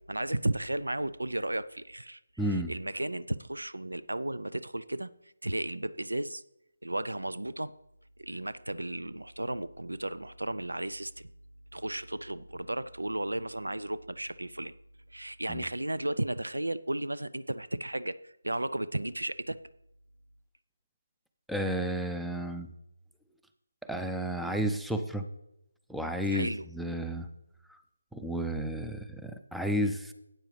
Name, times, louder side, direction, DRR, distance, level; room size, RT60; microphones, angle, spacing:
voice 1, 0.0-6.4 6.8-7.7 8.2-11.3 11.7-14.7 15.1-19.6 26.3-26.7, right 1 dB, 85° right, 16 dB, 0.4 m, -34 dB
voice 2, 2.4-2.7 15.5-15.6 21.5-22.7 23.8-25.2 25.9-27.3 28.1-30.1, equal, ahead, 7 dB, 0.5 m, -32 dB
12.5 x 8.9 x 3.2 m, 0.87 s
figure-of-eight pair, 155°, 0 cm